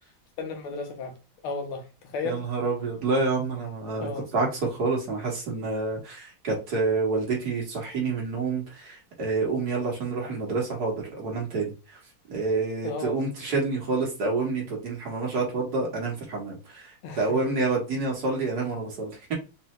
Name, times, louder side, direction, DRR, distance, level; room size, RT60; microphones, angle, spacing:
voice 1, 0.4-1.1 1.4-2.4 4.0-4.3 12.8-13.2 17.0-17.5, left 3 dB, 80° left, 1.8 m, -34 dB
voice 2, 2.2-11.7 12.3-19.3, right 3 dB, 50° right, 1.9 m, -28 dB
4.5 x 2.8 x 3.2 m
omnidirectional pair, 2.3 m